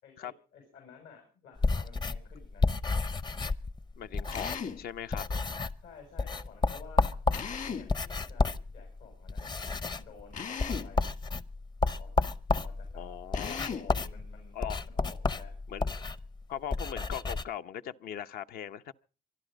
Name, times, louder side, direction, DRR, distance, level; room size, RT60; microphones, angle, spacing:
voice 1, 0.0-2.7 5.8-7.1 7.5-11.1 12.0-13.0 13.5-14.6 14.8-15.5, left 5 dB, 80° left, 6.6 m, -53 dB
sound 1, 1.6-4.8 5.1-5.9 6.2-17.4, left 3 dB, 25° left, 0.7 m, -31 dB
voice 2, 4.0-5.2 12.9-13.6 14.5-14.8 15.7-15.8 16.5-18.9, left 9 dB, 65° left, 0.8 m, -39 dB
Drill, 4.3-4.9 7.3-8.0 10.3-11.0 13.3-14.0, left 6 dB, 45° left, 1.6 m, -37 dB
24.0 x 11.5 x 5.1 m
cardioid pair, 110°, 17 cm